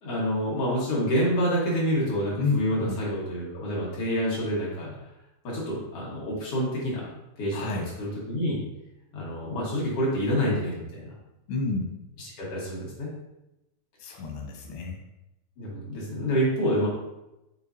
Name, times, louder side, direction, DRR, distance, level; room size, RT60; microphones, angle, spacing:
voice 1, 0.0-4.9 5.4-7.1 7.4-8.6 9.1-11.1 12.2-13.1 15.6-16.9, equal, 50° left, -6 dB, 1.9 m, -28 dB
voice 2, 2.4-3.0 7.5-7.9 11.5-12.0 14.0-15.0, left 3 dB, 85° left, 2 dB, 3.0 m, -30 dB
7.5 x 5.0 x 2.7 m, 0.93 s
omnidirectional pair, 4.4 m